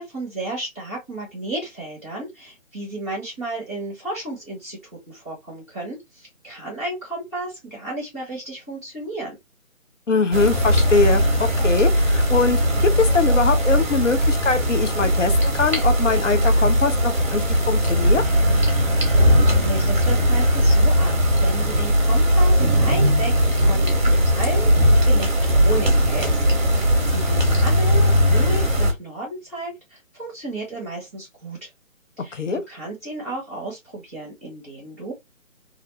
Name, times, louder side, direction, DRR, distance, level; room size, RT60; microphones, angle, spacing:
voice 1, 0.0-4.8 5.1-9.3 18.7-18.9 19.4-26.4 26.8-31.7 32.2-35.1, right 2 dB, 10° left, 0.7 m, -33 dB
voice 2, 10.1-18.2 32.3-32.6, left 4 dB, 60° left, 0.5 m, -22 dB
sound 1, 10.3-28.9, equal, 35° right, 0.7 m, -18 dB
2.5 x 2.0 x 2.7 m
figure-of-eight pair, 150°, 41 cm